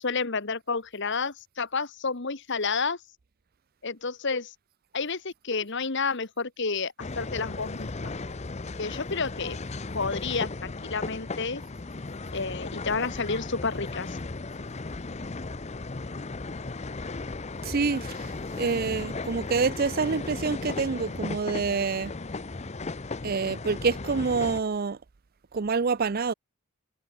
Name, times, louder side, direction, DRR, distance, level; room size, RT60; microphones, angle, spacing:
voice 1, 0.0-3.0 3.8-4.5 4.9-8.1 8.8-9.6 9.9-11.6 12.3-14.2, left 4 dB, 50° left, 1.4 m, -30 dB
sound 1, 7.0-24.6, left 3 dB, 30° left, 0.7 m, -36 dB
voice 2, 17.6-22.1 23.2-25.0 25.5-26.3, right 4 dB, 40° right, 0.5 m, -27 dB
head